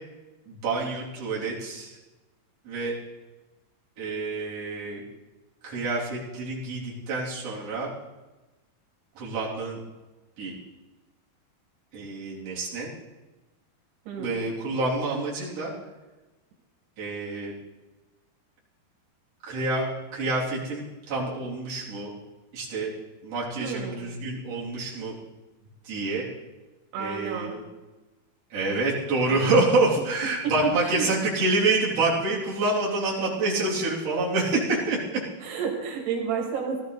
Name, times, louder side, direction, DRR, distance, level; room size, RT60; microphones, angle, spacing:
voice 1, 0.5-1.9 2.7-2.9 4.0-5.0 5.6-7.9 9.2-9.8 10.4-10.5 11.9-12.9 14.2-15.7 17.0-17.5 19.5-19.9 20.1-22.1 22.5-22.9 23.2-25.1 25.8-26.3 27.0-27.6 28.5-35.2, right 2 dB, 40° right, -6 dB, 3.8 m, -27 dB
voice 2, 14.1-14.4 23.6-24.1 26.9-27.6 29.3-29.4 30.6-31.1 34.7-34.8 35.4-36.8, right 6 dB, 85° right, 1 dB, 4.0 m, -31 dB
17.5 x 13.0 x 3.9 m, 1.1 s
omnidirectional pair, 4.6 m